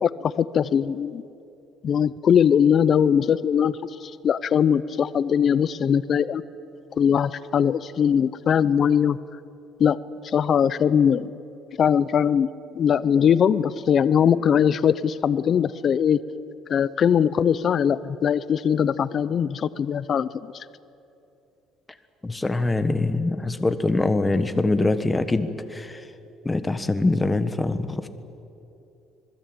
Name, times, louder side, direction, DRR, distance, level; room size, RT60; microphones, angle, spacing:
voice 1, 0.0-1.2 1.8-6.4 7.0-9.2 9.8-10.0 10.2-11.3 11.8-12.5 12.8-16.2 16.7-20.3 20.5-20.6, left 8 dB, 40° left, 16 dB, 0.6 m, -21 dB
voice 2, 22.2-26.0 26.4-28.1, left 2 dB, 10° left, 10 dB, 1.3 m, -23 dB
26.5 x 20.5 x 8.9 m, 2.8 s
cardioid pair, 135°, 0 cm